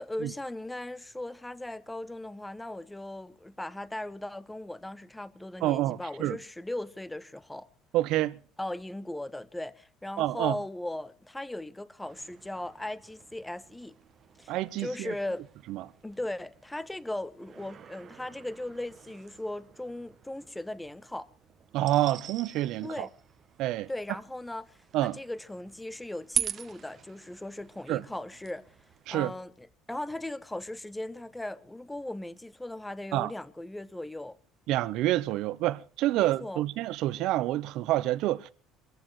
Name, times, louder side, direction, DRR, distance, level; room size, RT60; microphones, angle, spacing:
voice 1, 0.0-7.7 8.6-14.0 14.4-15.5 16.0-21.3 22.8-23.1 23.9-28.7 29.1-34.4 36.1-36.6, left 1 dB, 5° left, 0.7 m, -38 dB
voice 2, 5.6-6.4 7.9-8.4 10.2-10.6 14.5-15.1 15.7-15.8 21.7-23.1 23.6-23.9 24.9-25.2 27.9-28.0 29.1-29.3 33.1-33.3 34.7-38.5, right 15 dB, 65° right, 0.8 m, -28 dB
sound 1, 12.0-29.3, right 8 dB, 35° right, 0.9 m, -43 dB
25.5 x 14.5 x 3.2 m
cardioid pair, 135°, 0 cm